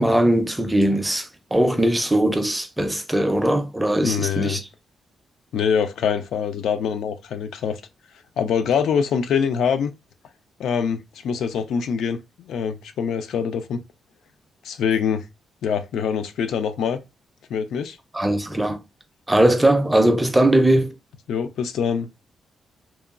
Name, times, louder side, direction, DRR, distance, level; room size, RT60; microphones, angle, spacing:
voice 1, 0.0-4.6 18.1-18.8 19.3-20.9, right 1 dB, 10° right, 0.4 m, -20 dB
voice 2, 4.0-4.6 5.5-7.8 8.4-9.9 10.6-13.8 14.6-15.2 15.6-17.0 17.5-18.0 21.3-22.2, left 7 dB, 85° left, 0.3 m, -24 dB
2.9 x 2.2 x 2.4 m
cardioid pair, 125°, 0 cm